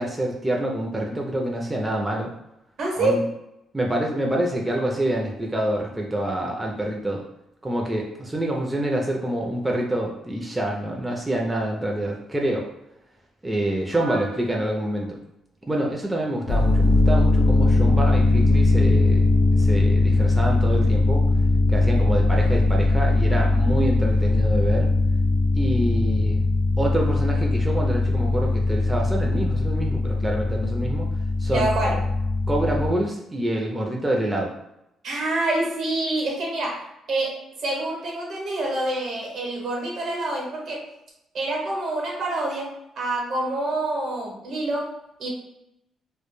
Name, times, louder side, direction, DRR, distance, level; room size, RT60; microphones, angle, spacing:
voice 1, 0.0-2.3 3.0-3.2 3.7-7.2 7.6-12.7 13.4-15.2 15.7-19.3 19.6-21.2 21.7-24.9 25.5-26.4 26.8-31.1 31.4-31.7 32.5-34.5, right 1 dB, 10° right, -1 dB, 0.4 m, -26 dB
voice 2, 2.8-3.2 13.9-14.6 31.5-32.0 35.0-40.9 41.3-45.3, right 2 dB, 65° right, -1 dB, 0.9 m, -27 dB
sound 1, 16.5-32.9, left 2 dB, 80° left, 0.4 m, -20 dB
2.1 x 2.0 x 3.0 m, 0.86 s
cardioid pair, 90°, 0 cm